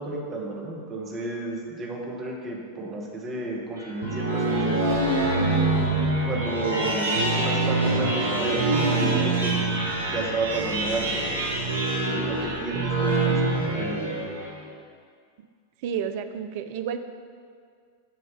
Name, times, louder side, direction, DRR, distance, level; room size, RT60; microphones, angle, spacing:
voice 1, 0.0-4.8 6.2-9.5 10.0-11.2 12.1-14.1, right 2 dB, 25° right, -1 dB, 1.0 m, -32 dB
sound 1, 3.8-14.6, right 2 dB, 75° right, 0.9 m, -25 dB
voice 2, 15.8-17.0, right 8 dB, 50° right, 9 dB, 0.3 m, -30 dB
7.1 x 2.7 x 5.6 m, 2.1 s
figure-of-eight pair, 90°, 0 cm